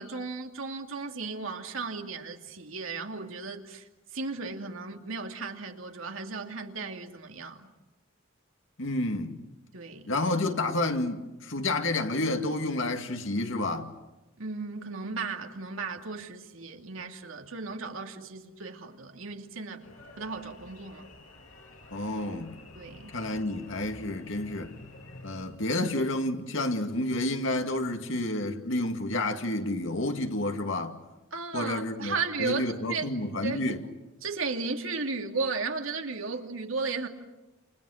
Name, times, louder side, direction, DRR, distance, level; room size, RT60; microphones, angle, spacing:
voice 1, 0.0-7.7 9.7-10.2 14.4-19.9 20.2-21.1 22.7-23.1 31.3-33.1 33.4-33.8 34.2-37.1, right 4 dB, 85° right, 2.7 m, -35 dB
voice 2, 8.8-9.4 10.1-13.9 21.9-22.5 23.1-24.7 25.2-31.0 31.5-32.1 32.4-33.8, left 2 dB, 70° left, 2.3 m, -30 dB
sound 1, 19.8-25.4, left 1 dB, 90° left, 6.7 m, -49 dB
29.0 x 29.0 x 6.6 m
head